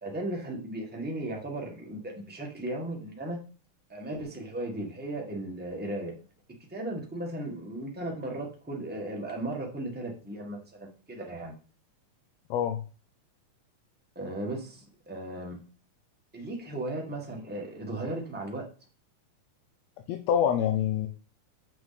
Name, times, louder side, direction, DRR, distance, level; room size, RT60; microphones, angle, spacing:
voice 1, 0.0-3.4 3.9-6.1 6.7-11.5 14.1-15.6 16.3-18.7, right 1 dB, 10° right, -1 dB, 0.4 m, -36 dB
voice 2, 12.5-12.8 20.1-21.1, left 9 dB, 75° left, 5 dB, 1.7 m, -26 dB
6.9 x 6.2 x 4.1 m, 0.37 s
omnidirectional pair, 3.5 m